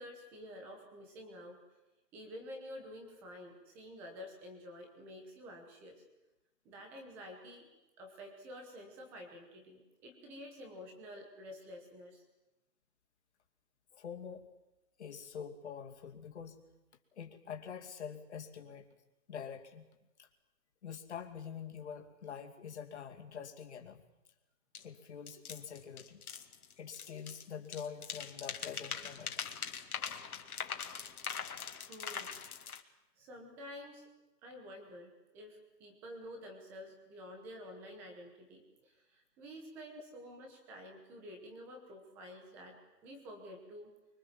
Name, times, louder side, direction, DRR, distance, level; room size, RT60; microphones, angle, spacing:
voice 1, 0.0-1.6 2.1-6.0 6.6-7.7 8.0-12.2 31.9-32.3 33.2-34.1 34.4-43.9, equal, 5° right, 3 dB, 1.0 m, -50 dB
voice 2, 13.9-14.5 15.0-16.6 17.2-18.9 19.3-19.9 20.2-20.3 20.8-24.0 24.8-26.2 26.8-29.4 30.5-31.2, left 7 dB, 40° left, 3 dB, 2.6 m, -46 dB
sound 1, 24.7-24.8 25.3-27.5 27.7-32.8, left 6 dB, 60° left, 2.2 m, -42 dB
26.0 x 23.0 x 7.5 m, 1.0 s
hypercardioid pair, 165°, 50 cm